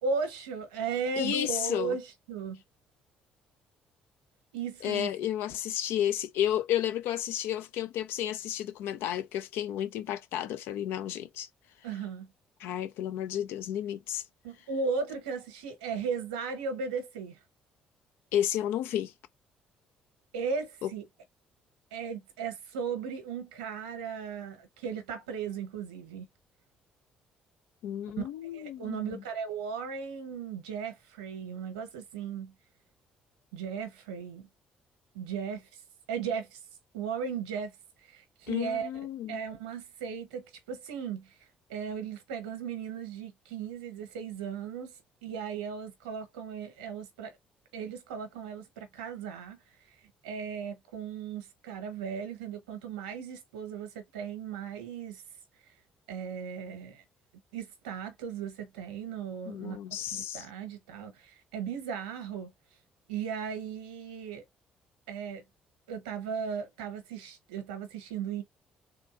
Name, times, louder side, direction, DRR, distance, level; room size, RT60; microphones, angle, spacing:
voice 1, 0.0-2.6 4.5-5.1 11.8-12.3 14.4-17.4 20.3-21.0 21.9-26.3 28.2-28.3 28.5-32.5 33.5-34.5 35.1-35.7 36.1-36.6 36.9-37.7 38.1-38.9 39.3-41.3 41.7-44.9 45.2-47.3 47.7-49.6 50.2-55.2 56.1-57.0 57.5-62.5 63.1-64.4 65.1-65.4 65.9-68.4, right 6 dB, 80° right, 1.0 m, -36 dB
voice 2, 1.2-2.0 4.8-11.5 12.6-14.2 18.3-19.1 20.8-20.9 27.8-29.2 38.5-39.4 59.5-60.5, left 11 dB, 65° left, 0.4 m, -32 dB
3.6 x 2.6 x 2.4 m
hypercardioid pair, 50°, 4 cm